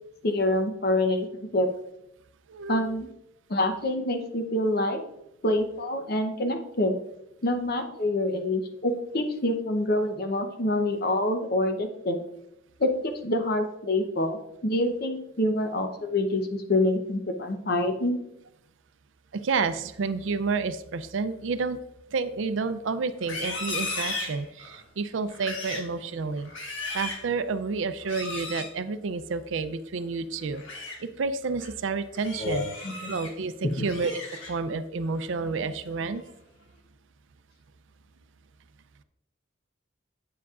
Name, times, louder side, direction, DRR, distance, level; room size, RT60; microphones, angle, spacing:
voice 1, 0.2-1.7 2.7-3.1 3.5-5.0 5.4-7.0 7.4-12.2 12.8-18.2 32.4-33.1 33.6-33.9, left 1 dB, 55° left, 6 dB, 0.8 m, -26 dB
voice 2, 2.5-2.8 19.3-21.8 22.1-30.6 31.0-32.6 33.1-34.2 34.5-36.2, right 4 dB, 75° right, 12 dB, 0.4 m, -30 dB
Livestock farm animals working animals, 23.2-24.8 25.3-25.9 26.4-27.3 28.0-28.7 30.4-31.0 31.4-31.7 32.1-33.3 33.7-34.7 35.1-35.5 35.9-36.3, left 3 dB, 90° left, 1.3 m, -36 dB
8.3 x 6.9 x 2.4 m, 0.81 s
head